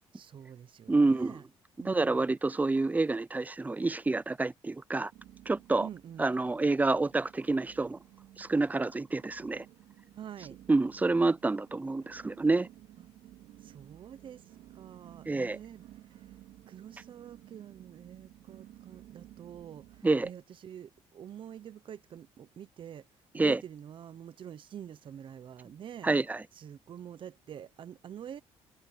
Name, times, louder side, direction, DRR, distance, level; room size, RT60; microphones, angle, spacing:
voice 1, 0.1-1.4 1.8-2.3 5.8-6.3 10.1-10.6 13.0-13.1 13.6-14.4 14.7-16.3 16.7-23.1 23.3-26.1 26.5-28.4, right 9 dB, 50° right, 0.9 m, -46 dB
voice 2, 0.9-1.3 1.8-5.1 5.5-5.9 6.2-8.0 8.4-9.6 10.7-12.7 15.3-15.6 20.0-20.3 23.3-23.6 26.0-26.4, right 3 dB, 15° right, 0.5 m, -28 dB
sound 1, 2.4-2.9 3.2-3.8 4.3-4.4 5.1-20.3, right 13 dB, 80° right, 3.4 m, -55 dB
cardioid pair, 100°, 11 cm